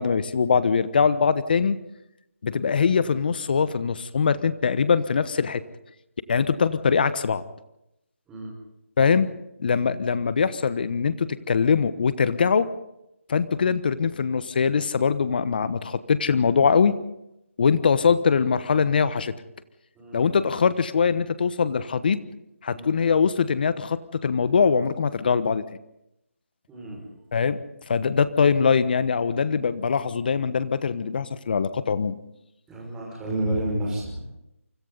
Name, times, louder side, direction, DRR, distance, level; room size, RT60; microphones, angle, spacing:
voice 1, 0.0-1.8 2.4-5.6 6.3-7.4 9.0-9.3 9.6-12.7 13.3-17.0 17.6-19.3 20.1-22.2 22.6-25.6 27.3-27.6 27.9-32.1, left 6 dB, 40° left, 14 dB, 1.2 m, -22 dB
voice 2, 26.7-27.1 32.7-34.2, right 1 dB, 10° right, -2 dB, 5.4 m, -30 dB
29.0 x 25.0 x 4.1 m, 0.86 s
figure-of-eight pair, 160°, 8 cm